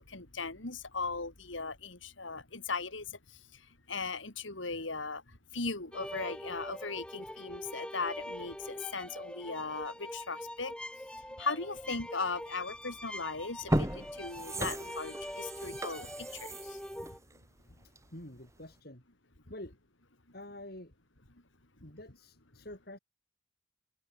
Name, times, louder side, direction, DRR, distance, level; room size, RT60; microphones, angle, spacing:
voice 1, 0.0-10.7 11.1-16.8, left 4 dB, 85° left, 3.5 m, -38 dB
sound 1, 5.9-17.2, left 1 dB, 5° left, 1.9 m, -43 dB
sound 2, 12.9-13.1 13.5-18.2 18.6-18.7, right 1 dB, 15° right, 1.8 m, -36 dB
voice 2, 18.1-19.0 19.5-19.8 20.3-20.9 21.8-23.0, left 1 dB, 55° left, 6.1 m, -47 dB
open air
head